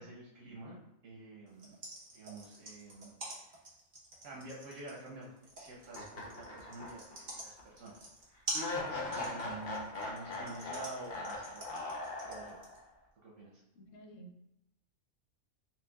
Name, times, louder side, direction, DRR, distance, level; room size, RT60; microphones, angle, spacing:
voice 1, 0.0-1.8 2.1-3.6 4.2-8.1 8.6-11.7 12.2-12.6 13.2-13.6, right 2 dB, 90° right, -4 dB, 1.2 m, -49 dB
sound 1, 1.5-12.8, right 2 dB, 45° right, 1.0 m, -45 dB
sound 2, 5.9-7.2 7.6-7.7 8.5-12.8, left 2 dB, 55° left, 0.9 m, -40 dB
voice 2, 13.7-14.5, right 2 dB, 85° left, 1 dB, 1.1 m, -53 dB
5.9 x 2.2 x 2.2 m, 0.82 s
omnidirectional pair, 1.3 m